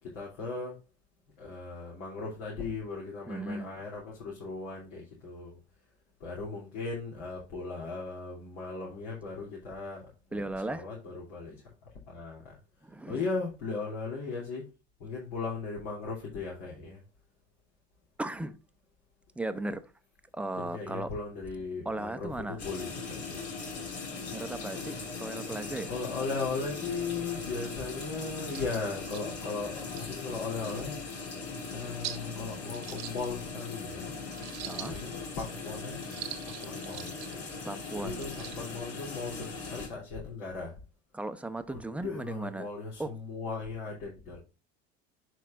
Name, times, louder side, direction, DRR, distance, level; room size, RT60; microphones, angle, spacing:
voice 1, 0.0-0.8 1.4-5.6 6.2-11.6 12.1-12.5 13.1-14.6 15.0-17.0 20.6-23.4 25.9-31.0 31.7-34.2 34.7-36.2 36.4-37.1 38.0-38.3 38.6-40.7 41.7-44.4, left 4 dB, 60° left, 2.9 m, -37 dB
voice 2, 3.3-3.8 10.3-10.9 12.8-13.2 18.2-18.6 19.4-19.9 20.3-21.1 21.8-22.6 24.3-25.9 34.6-35.0 37.6-38.3 41.1-42.7 43.0-43.1, right 2 dB, 5° right, 0.6 m, -36 dB
sound 1, 22.6-39.9, left 4 dB, 45° left, 3.4 m, -40 dB
sound 2, 28.5-28.7 29.1-29.2 29.8-30.1 30.6-30.7 31.2-31.3 32.0-32.2 32.7-33.7 34.3-35.2 36.0-37.3 38.1-38.6, right 14 dB, 55° right, 0.9 m, -42 dB
11.0 x 4.7 x 2.4 m
hypercardioid pair, 90°, 33 cm